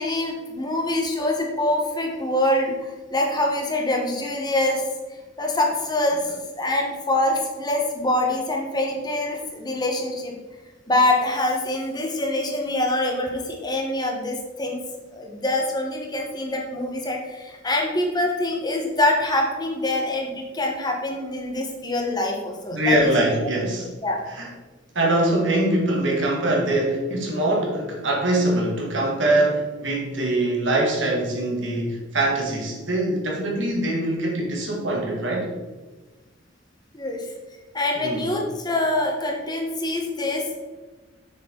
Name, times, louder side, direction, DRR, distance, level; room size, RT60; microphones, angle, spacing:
voice 1, 0.0-4.9 5.4-10.3 10.9-14.8 15.1-23.1 24.0-24.2 36.9-37.3 37.7-40.5, left 1 dB, 20° left, 0 dB, 1.3 m, -25 dB
voice 2, 22.7-23.9 24.3-24.5 25.0-35.5 38.0-38.4, right 1 dB, 80° right, -1 dB, 1.9 m, -23 dB
7.1 x 6.5 x 4.0 m, 1.2 s
head